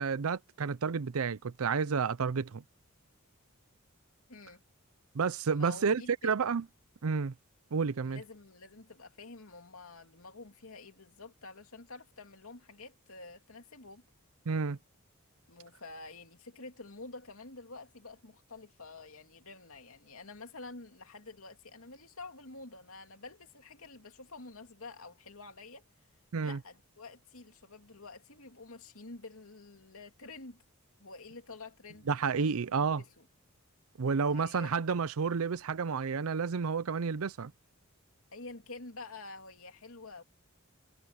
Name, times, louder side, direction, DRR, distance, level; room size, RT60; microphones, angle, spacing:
voice 1, 0.0-2.6 5.1-6.6 7.0-7.3 7.7-8.2 14.5-14.8 26.3-26.6 32.1-33.0 34.0-37.5, right 5 dB, 75° right, 0.5 m, -30 dB
voice 2, 4.3-4.6 5.5-6.3 8.0-14.0 15.5-25.8 26.4-30.6 31.0-32.1 32.4-32.5 33.0-33.3 34.3-34.7 38.3-40.2, left 3 dB, 70° left, 2.7 m, -48 dB
head